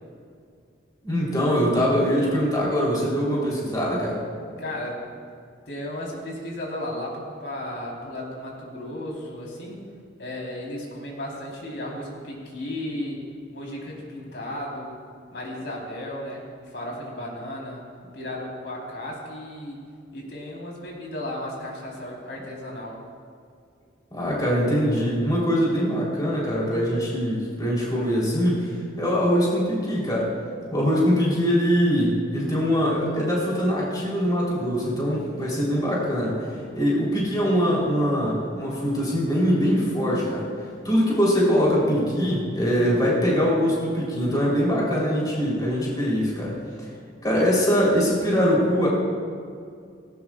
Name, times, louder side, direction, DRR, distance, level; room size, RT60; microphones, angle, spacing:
voice 1, 1.0-4.2 24.1-30.3 30.7-36.5 36.7-40.5 40.8-46.9 47.2-48.9, equal, 20° left, -5 dB, 3.8 m, -23 dB
voice 2, 4.6-5.1 5.7-9.8 10.2-13.2 13.5-15.0 15.3-16.4 16.7-17.8 18.1-19.8 20.1-23.0, left 1 dB, 65° left, -3 dB, 4.1 m, -34 dB
18.5 x 18.0 x 2.5 m, 2.3 s
head